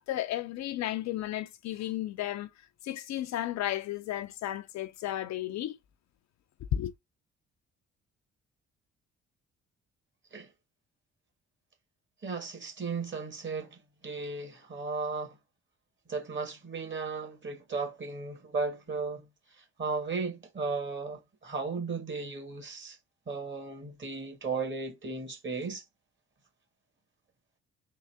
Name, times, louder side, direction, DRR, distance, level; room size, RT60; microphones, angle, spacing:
voice 1, 0.0-2.5 2.8-5.8 6.7-6.9, left 13 dB, 50° left, 0.5 m, -33 dB
voice 2, 12.2-15.3 16.1-19.3 19.8-23.0 23.3-25.8, right 4 dB, 35° right, 1.7 m, -35 dB
3.7 x 2.7 x 3.2 m
hypercardioid pair, 45°, 35 cm